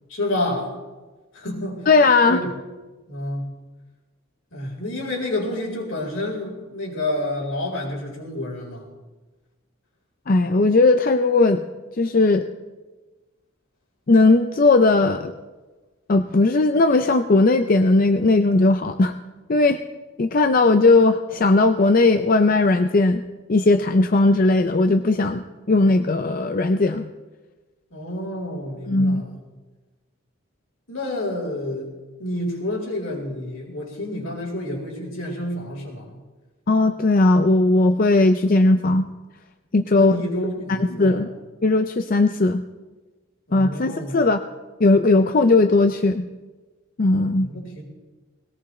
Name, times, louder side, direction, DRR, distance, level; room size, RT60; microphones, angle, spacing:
voice 1, 0.1-0.7 1.3-1.8 2.3-2.5 3.1-3.5 4.5-8.9 27.9-29.4 30.9-31.9 32.2-36.1 39.9-41.3 43.5-44.2 47.4-47.8, left 1 dB, 75° left, -1 dB, 4.3 m, -29 dB
voice 2, 1.9-2.4 10.3-11.6 12.0-12.5 14.1-15.3 16.1-19.1 19.5-19.8 20.2-23.2 23.5-25.4 25.7-27.1 28.9-29.2 36.7-39.0 39.7-40.2 40.7-41.3 41.6-42.6 43.5-44.4 44.8-46.2 47.0-47.5, left 2 dB, 40° left, 8 dB, 0.5 m, -17 dB
20.0 x 18.0 x 3.2 m, 1.2 s
head